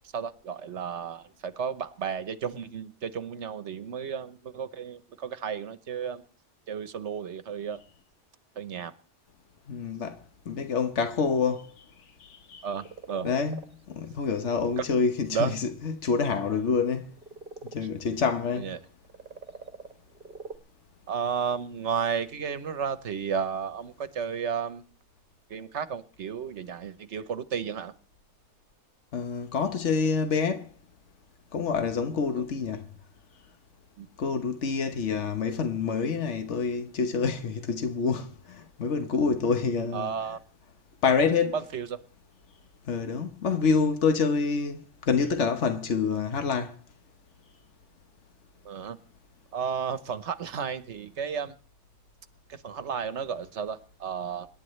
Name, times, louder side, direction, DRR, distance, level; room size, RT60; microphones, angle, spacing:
voice 1, 0.1-6.2 6.7-7.8 8.6-8.9 12.6-13.3 14.8-14.9 15.3-15.6 18.6-18.8 21.1-24.8 25.5-27.9 32.3-32.5 34.0-34.1 39.9-40.4 41.2-42.0 48.6-49.0 49.5-51.5 52.5-54.5, right 7 dB, 80° right, 1.2 m, -33 dB
voice 2, 9.7-10.2 10.5-11.8 12.2-12.7 13.2-17.1 17.6-18.7 29.1-30.7 31.5-32.8 34.2-40.2 41.0-41.5 42.9-46.8, left 5 dB, 80° left, 1.4 m, -27 dB
sound 1, 12.2-12.3 12.6-13.7 14.1-14.7 15.5-15.6 17.1-17.8 18.8-18.9 19.0-20.6, right 4 dB, 45° right, 1.4 m, -43 dB
26.5 x 11.0 x 3.2 m
omnidirectional pair, 1.2 m